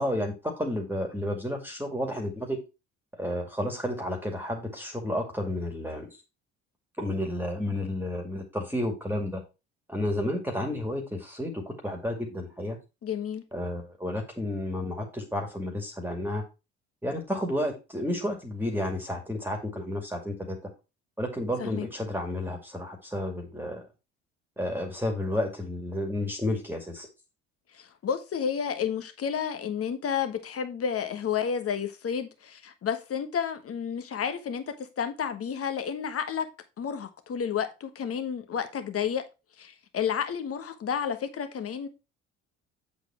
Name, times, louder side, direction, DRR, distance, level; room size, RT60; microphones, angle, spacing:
voice 1, 0.0-2.6 3.2-6.2 7.0-9.4 9.9-12.8 13.5-16.4 17.0-20.6 21.2-23.8 24.6-27.1, left 1 dB, 5° right, 2.2 m, -31 dB
voice 2, 13.0-13.4 21.6-21.9 27.7-36.5 36.8-39.2 39.6-41.9, left 7 dB, 40° left, 1.4 m, -31 dB
7.8 x 4.3 x 4.3 m
hypercardioid pair, 55°, 36 cm